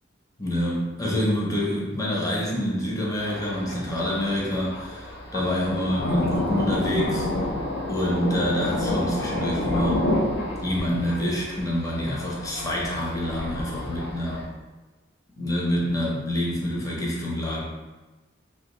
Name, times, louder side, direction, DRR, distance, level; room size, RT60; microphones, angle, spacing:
voice 1, 0.4-7.3 7.9-10.0 10.6-14.5 15.4-17.6, equal, 20° left, -5 dB, 0.6 m, -27 dB
Thunder, 3.2-14.5, left 1 dB, 80° left, 0.5 m, -29 dB
2.4 x 2.3 x 2.9 m, 1.2 s
head